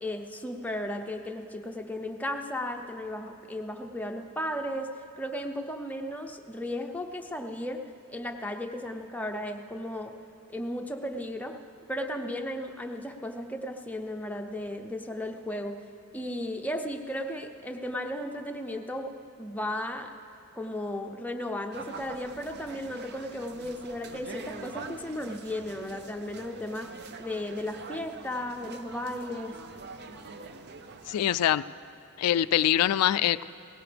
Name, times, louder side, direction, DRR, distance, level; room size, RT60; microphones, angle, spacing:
voice 1, 0.0-4.9 5.2-7.8 8.1-10.1 10.5-11.6 11.9-15.8 16.1-19.1 19.4-20.1 20.5-26.9 27.2-29.6, left 1 dB, 5° left, 3 dB, 0.7 m, -35 dB
sound 1, 21.7-31.4, right 4 dB, 50° right, 0.6 m, -44 dB
voice 2, 31.1-31.6 32.2-33.4, left 11 dB, 85° left, 17 dB, 0.3 m, -24 dB
18.0 x 16.5 x 3.4 m, 2.8 s
head